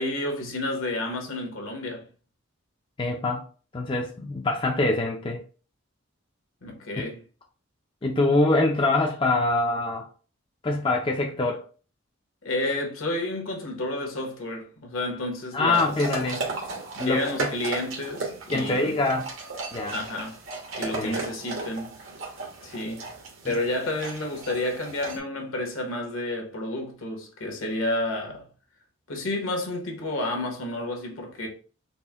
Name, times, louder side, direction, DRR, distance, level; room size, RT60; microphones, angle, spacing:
voice 1, 0.0-2.0 6.6-7.2 12.4-15.9 16.9-19.0 19.9-20.4 20.8-22.0 22.6-23.0 23.4-28.5 29.1-31.5, left 2 dB, 80° left, 1.1 m, -30 dB
voice 2, 3.0-3.4 3.7-5.4 7.0-7.1 8.0-10.1 10.6-11.6 15.5-16.4 17.0-17.5 18.5-19.3 19.7-20.0 20.9-21.2 23.4-23.5, left 2 dB, 25° left, 0.4 m, -24 dB
sound 1, 15.7-25.2, right 3 dB, 75° right, 1.1 m, -35 dB
4.2 x 2.1 x 3.4 m
head